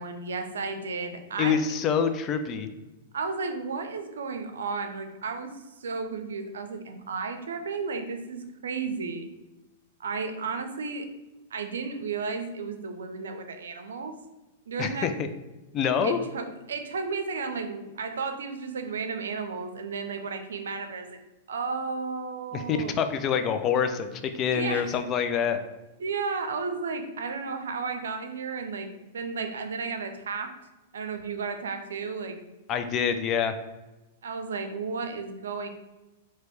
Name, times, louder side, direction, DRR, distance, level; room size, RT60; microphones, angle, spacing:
voice 1, 0.0-1.7 3.1-5.5 5.8-9.3 10.0-11.1 11.5-14.1 14.7-15.1 16.0-21.1 21.5-22.9 24.4-24.9 26.0-30.5 30.9-32.4 34.2-35.7, right 4 dB, 85° right, 7 dB, 0.5 m, -33 dB
voice 2, 1.4-2.7 14.8-15.3 15.7-16.2 22.5-24.1 24.3-25.6 32.7-33.5, left 7 dB, 35° left, 8 dB, 0.4 m, -26 dB
3.3 x 3.0 x 4.5 m, 1.1 s
hypercardioid pair, 120°, 0 cm